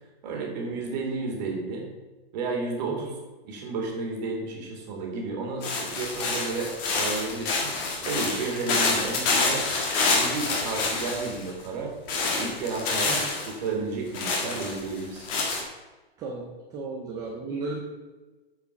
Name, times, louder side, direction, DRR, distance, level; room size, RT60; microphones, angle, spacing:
voice 1, 0.2-1.9 2.3-3.1 3.4-7.7 8.0-9.6 10.1-11.9 12.2-13.1 13.5-15.3, right 3 dB, 45° right, 0 dB, 2.3 m, -32 dB
sound 1, 5.6-11.5 12.1-13.5 14.1-15.6, left 3 dB, 30° left, 1.9 m, -27 dB
voice 2, 16.2-17.8, right 3 dB, 10° right, -1 dB, 0.4 m, -35 dB
8.4 x 4.9 x 5.8 m, 1.2 s
hypercardioid pair, 160°, 31 cm